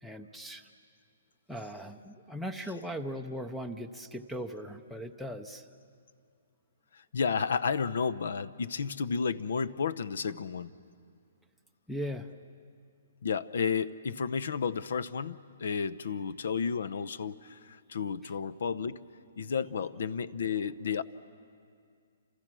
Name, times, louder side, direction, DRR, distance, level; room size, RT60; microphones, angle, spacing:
voice 1, 0.0-0.7 1.5-5.6 11.9-12.3, equal, ahead, 9 dB, 0.6 m, -39 dB
voice 2, 6.9-10.8 13.2-19.0 19.4-21.0, left 6 dB, 70° left, 18 dB, 0.8 m, -32 dB
29.5 x 27.0 x 6.2 m, 2.3 s
hypercardioid pair, 170°, 0 cm